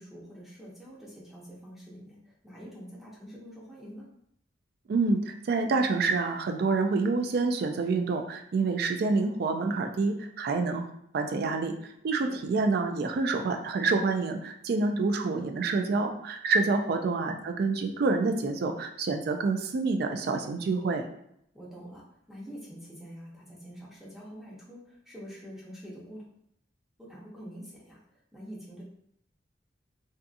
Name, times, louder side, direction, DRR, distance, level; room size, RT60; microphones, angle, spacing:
voice 1, 0.0-4.1 12.3-12.4 21.5-26.2 27.0-28.8, equal, ahead, -6 dB, 0.6 m, -46 dB
voice 2, 4.9-10.9 11.1-21.0, right 3 dB, 55° right, 6 dB, 0.3 m, -27 dB
2.6 x 2.5 x 2.4 m, 0.73 s
head